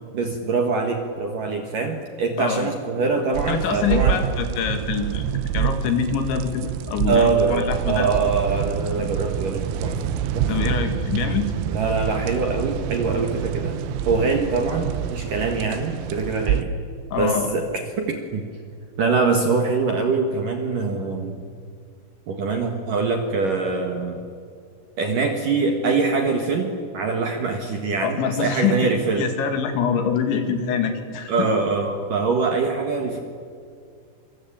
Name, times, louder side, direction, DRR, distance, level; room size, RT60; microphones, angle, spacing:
voice 1, 0.1-4.2 7.1-9.9 10.4-10.5 11.7-13.8 14.0-16.7 17.2-17.7 18.0-18.4 19.0-21.4 22.3-24.2 25.0-29.3 31.3-33.2, right 4 dB, 55° right, 4 dB, 2.5 m, -23 dB
voice 2, 2.4-2.7 3.5-5.2 5.5-8.1 10.5-11.5 17.1-17.6 28.0-28.9 29.2-31.5, left 6 dB, 65° left, 7 dB, 4.0 m, -25 dB
sound 1, 3.3-16.6, right 8 dB, 80° right, 3.6 m, -27 dB
27.0 x 24.0 x 8.9 m, 2.3 s
omnidirectional pair, 6.0 m